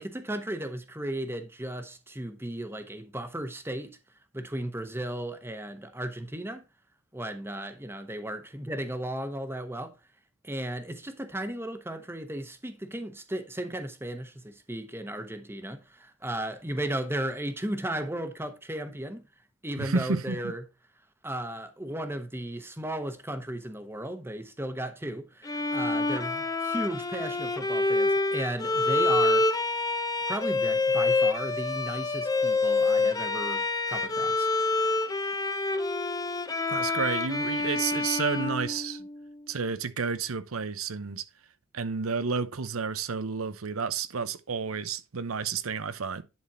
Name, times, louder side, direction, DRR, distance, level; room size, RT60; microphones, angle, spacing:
voice 1, 0.0-4.0 4.3-6.6 7.1-9.9 10.4-19.2 19.6-20.6 21.2-29.5 30.3-34.5 34.8-35.0, right 1 dB, 10° right, 1.0 m, -35 dB
voice 2, 19.8-20.5 36.7-39.0 39.5-41.2 41.7-46.2, right 5 dB, 85° right, 0.8 m, -31 dB
Bowed string instrument, 25.4-39.3, left 3 dB, 15° left, 0.7 m, -27 dB
10.5 x 4.2 x 4.2 m
head